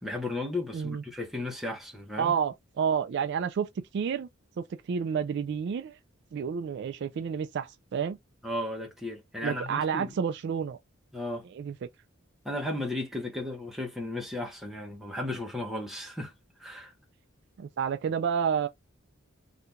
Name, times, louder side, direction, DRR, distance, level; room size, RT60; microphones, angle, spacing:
voice 1, 0.0-2.3 8.4-10.1 11.1-11.4 12.4-16.3 16.6-16.9, left 1 dB, ahead, 0.9 m, -35 dB
voice 2, 2.2-4.3 4.6-6.0 6.3-8.2 9.4-10.8 11.5-11.7 17.6-18.7, right 7 dB, 55° right, 0.3 m, -30 dB
2.8 x 2.5 x 3.3 m
head